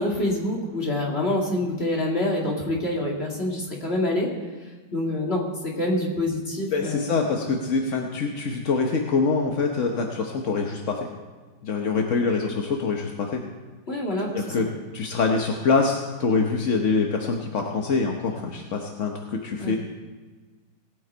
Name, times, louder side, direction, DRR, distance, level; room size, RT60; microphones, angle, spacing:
voice 1, 0.0-4.3 4.9-7.2 13.9-14.7 19.6-19.8, left 1 dB, 30° left, -2 dB, 2.5 m, -26 dB
voice 2, 6.7-11.0 11.6-13.4 14.2-14.7 14.9-19.1 19.4-19.8, left 4 dB, 50° left, 2 dB, 1.0 m, -24 dB
19.0 x 8.7 x 4.4 m, 1.4 s
omnidirectional pair, 2.3 m